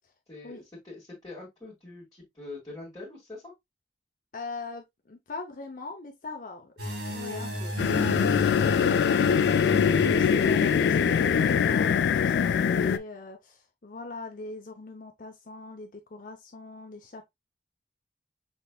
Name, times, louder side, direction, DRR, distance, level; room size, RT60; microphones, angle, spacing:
voice 1, 0.3-3.5, left 2 dB, 20° left, 2.1 m, -44 dB
voice 2, 4.3-6.7 7.1-9.2 9.5-17.3, left 3 dB, 50° left, 0.7 m, -41 dB
sound 1, 6.8-12.7, equal, 65° right, 1.8 m, -35 dB
sound 2, 7.8-13.0, left 7 dB, 70° left, 0.3 m, -23 dB
5.9 x 3.3 x 2.3 m
head